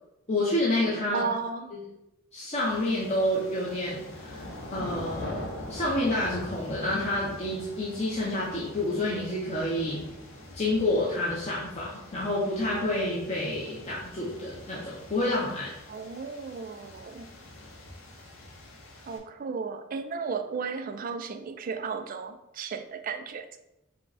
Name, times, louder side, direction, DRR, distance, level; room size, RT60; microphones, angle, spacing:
voice 1, 0.3-1.3 1.7-1.8 2.3-4.4 4.7-10.0 10.5-15.7, left 1 dB, 30° left, -7 dB, 0.8 m, -29 dB
voice 2, 1.1-1.8 15.9-17.3 19.0-23.6, right 5 dB, 40° right, 8 dB, 0.3 m, -34 dB
sound 1, 2.6-19.2, left 1 dB, 75° left, 0.8 m, -44 dB
5.3 x 2.2 x 4.0 m, 0.90 s
head